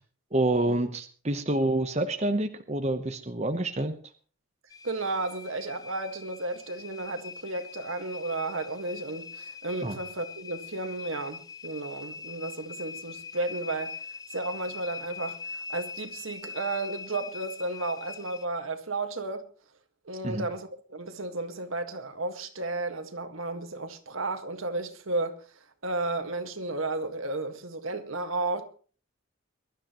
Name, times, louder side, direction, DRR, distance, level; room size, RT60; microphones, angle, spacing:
voice 1, 0.3-4.0 9.8-10.0 20.2-20.4, right 2 dB, 30° right, 1.0 m, -27 dB
sound 1, 4.7-18.5, left 5 dB, 20° left, 0.6 m, -42 dB
voice 2, 4.8-14.0 14.3-19.4 20.0-25.4 25.8-28.7, right 2 dB, 75° right, 1.7 m, -33 dB
22.5 x 12.5 x 3.0 m
head